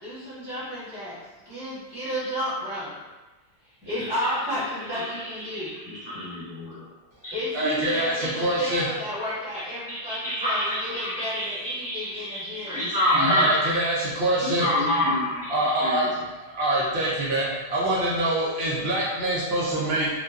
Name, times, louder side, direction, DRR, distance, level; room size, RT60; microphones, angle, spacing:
voice 1, 0.0-1.2 1.5-2.9 3.8-6.1 7.3-12.9, equal, 25° left, -13 dB, 0.8 m, -32 dB
voice 2, 3.9-4.3 4.9-5.1 5.4-6.8 7.2-7.4 9.5-9.6 9.9-13.6 14.4-16.1, left 1 dB, 5° right, -13 dB, 1.3 m, -27 dB
voice 3, 7.5-8.9 13.1-14.7 15.5-16.1 16.4-20.1, right 1 dB, 70° right, -7 dB, 0.9 m, -25 dB
2.5 x 2.2 x 2.3 m, 1.2 s
omnidirectional pair, 1.1 m